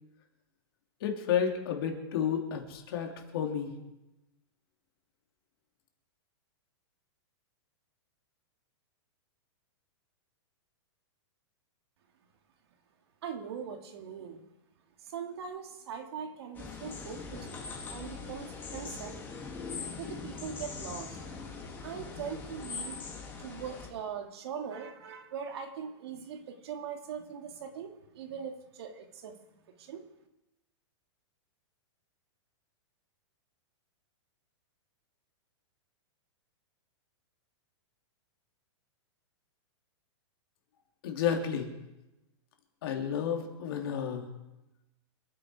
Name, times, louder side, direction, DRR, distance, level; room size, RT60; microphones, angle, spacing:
voice 1, 1.0-3.7 41.0-41.7 42.8-44.3, left 8 dB, 50° left, 3 dB, 2.8 m, -31 dB
voice 2, 13.2-14.4 15.0-17.5 17.9-19.2 19.9-21.2 21.8-23.0 23.4-29.4 29.8-30.1, right 7 dB, 60° right, 4 dB, 2.3 m, -41 dB
sound 1, 16.5-23.9, left 4 dB, 15° left, 2.2 m, -41 dB
26.5 x 9.6 x 4.8 m, 0.96 s
supercardioid pair, 170°, 15 cm